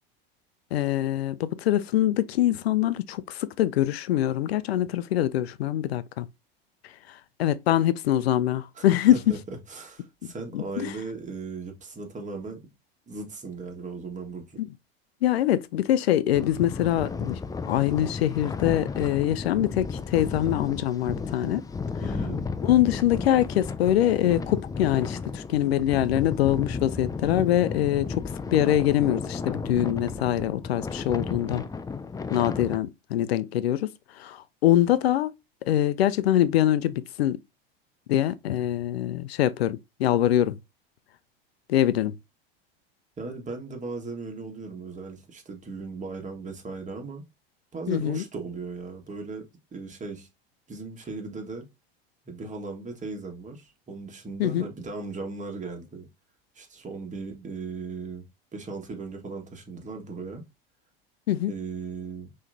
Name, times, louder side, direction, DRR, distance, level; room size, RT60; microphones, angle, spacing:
voice 1, 0.7-6.3 7.4-9.2 10.5-10.9 15.2-17.4 17.7-21.6 22.6-28.2 28.5-31.6 32.3-33.9 34.2-35.3 35.7-37.4 38.1-40.6 41.7-42.1 47.9-48.2 54.4-54.6 61.3-61.5, left 12 dB, 90° left, 0.5 m, -24 dB
voice 2, 8.7-12.7 13.1-14.6 22.0-22.5 43.2-47.2 47.7-49.4 49.7-50.3 50.7-51.6 52.2-56.1 56.5-58.2 58.5-60.5 61.5-62.3, right 4 dB, 25° right, 1.7 m, -37 dB
sound 1, 16.3-32.8, left 5 dB, 10° left, 0.4 m, -33 dB
5.7 x 3.2 x 2.7 m
hypercardioid pair, 95°, 30 cm